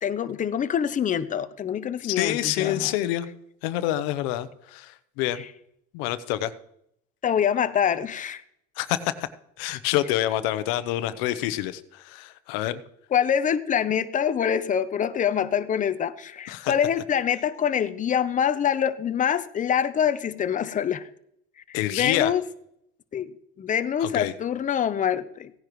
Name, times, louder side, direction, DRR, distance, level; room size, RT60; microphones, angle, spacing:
voice 1, 0.0-2.9 7.2-8.4 13.1-21.1 21.7-22.4 23.1-25.5, left 8 dB, 25° left, 0.7 m, -25 dB
voice 2, 2.0-3.3 3.6-5.4 5.9-6.5 8.8-9.1 9.6-12.8 16.5-16.7 21.7-22.3 24.0-24.3, left 14 dB, 75° left, 0.9 m, -27 dB
17.0 x 10.0 x 3.1 m
supercardioid pair, 105°, 29 cm